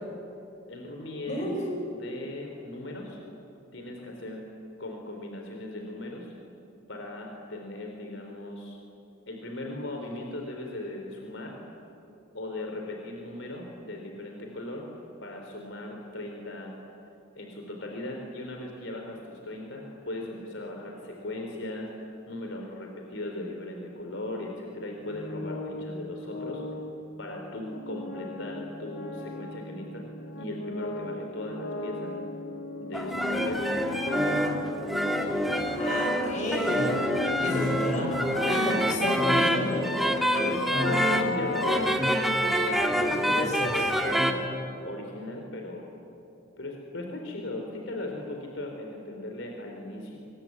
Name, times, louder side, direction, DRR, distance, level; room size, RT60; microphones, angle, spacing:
voice 1, 0.7-1.5 1.9-3.2 3.7-4.4 4.8-6.3 6.9-8.8 9.3-11.6 12.3-14.9 15.2-16.7 17.3-21.9 22.3-26.6 27.2-30.0 30.4-32.1 32.8-34.1 40.4-41.9 42.2-45.9 46.6-50.2, left 1 dB, 75° left, 1 dB, 3.9 m, -38 dB
voice 2, 1.3-1.8 35.6-37.0 37.4-40.3 43.1-43.8, left 1 dB, 40° left, 1 dB, 7.0 m, -32 dB
sound 1, 25.0-42.7, left 2 dB, 90° left, 2.0 m, -36 dB
sound 2, 32.9-44.3, equal, ahead, 2.1 m, -26 dB
25.5 x 23.0 x 9.7 m, 2.9 s
head